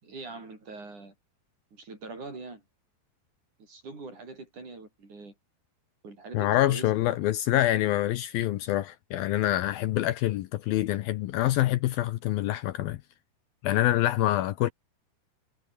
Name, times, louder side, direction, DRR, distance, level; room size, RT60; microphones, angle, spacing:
voice 1, 0.0-1.2 1.7-2.6 3.6-5.3 6.0-7.3, right 3 dB, 45° right, 9.1 m, -43 dB
voice 2, 6.3-13.0 13.6-14.7, left 14 dB, 75° left, 2.4 m, -26 dB
omnidirectional pair, 4.7 m